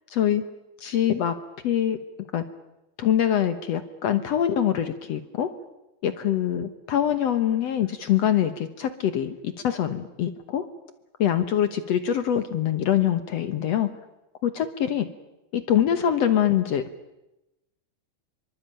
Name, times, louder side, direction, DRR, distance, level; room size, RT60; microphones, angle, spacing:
voice 1, 0.1-0.5 0.8-1.4 1.6-2.0 2.3-2.4 3.0-5.5 6.0-10.6 11.2-13.9 14.4-15.1 15.5-16.8, left 10 dB, 70° left, 11 dB, 1.6 m, -24 dB
25.0 x 24.5 x 9.0 m, 0.94 s
omnidirectional pair, 4.6 m